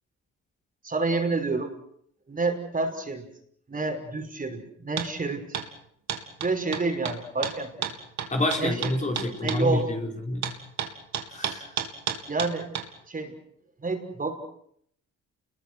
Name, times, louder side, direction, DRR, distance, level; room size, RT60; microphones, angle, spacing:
voice 1, 0.8-1.7 2.3-3.2 3.7-5.4 6.4-7.9 8.6-8.8 9.4-9.9 12.3-12.7 13.1-13.3 13.8-14.4, right 3 dB, 30° right, 4 dB, 6.0 m, -28 dB
sound 1, 5.0-5.1 5.5-5.7 6.1-9.6 10.4-12.9, right 8 dB, 65° right, 3.6 m, -31 dB
voice 2, 8.3-10.5 11.3-11.7, left 1 dB, 25° left, 1 dB, 5.0 m, -28 dB
29.0 x 22.5 x 6.4 m, 0.67 s
cardioid pair, 90°, 30 cm